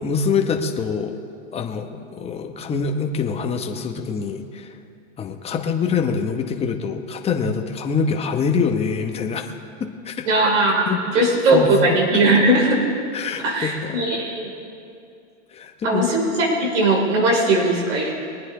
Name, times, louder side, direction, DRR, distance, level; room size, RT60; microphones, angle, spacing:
voice 1, 0.0-1.1 1.5-4.7 5.2-9.4 9.8-10.3 10.9-11.2 11.5-11.7 13.1-14.0 15.5-16.1, left 5 dB, 15° left, 4 dB, 1.0 m, -25 dB
voice 2, 10.2-12.8 13.4-14.5 15.8-18.1, right 2 dB, 70° right, -1 dB, 3.1 m, -19 dB
22.5 x 9.4 x 3.8 m, 2.5 s
hypercardioid pair, 130°, 38 cm